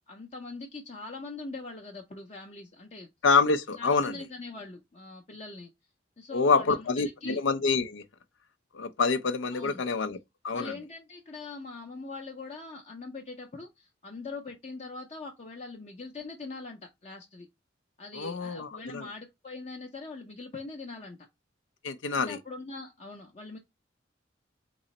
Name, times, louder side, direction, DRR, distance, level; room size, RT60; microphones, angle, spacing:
voice 1, 0.1-3.1 3.8-5.7 6.2-6.9 7.2-7.4 9.5-9.8 10.5-17.5 18.0-21.3 22.2-23.6, left 3 dB, 35° left, 0.6 m, -42 dB
voice 2, 3.2-4.1 6.3-8.0 8.7-10.2 10.4-10.7 18.2-19.1 21.8-22.4, left 4 dB, 75° left, 0.5 m, -26 dB
3.8 x 3.1 x 4.0 m
head